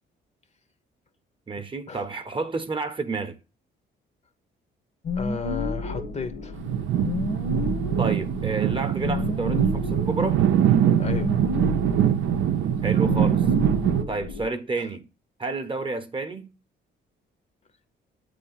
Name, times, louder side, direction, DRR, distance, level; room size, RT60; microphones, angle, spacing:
voice 1, 1.5-3.4 8.0-10.4 12.8-13.4 14.1-15.1 15.4-16.5, right 3 dB, 25° right, 0.8 m, -30 dB
sound 1, 5.0-14.5, left 3 dB, 60° left, 1.2 m, -31 dB
voice 2, 5.2-6.6 11.0-11.4 14.8-14.9, left 5 dB, 35° left, 0.8 m, -34 dB
sound 2, 6.6-14.0, right 10 dB, 80° right, 0.6 m, -23 dB
8.5 x 3.4 x 5.5 m
cardioid pair, 90°, 20 cm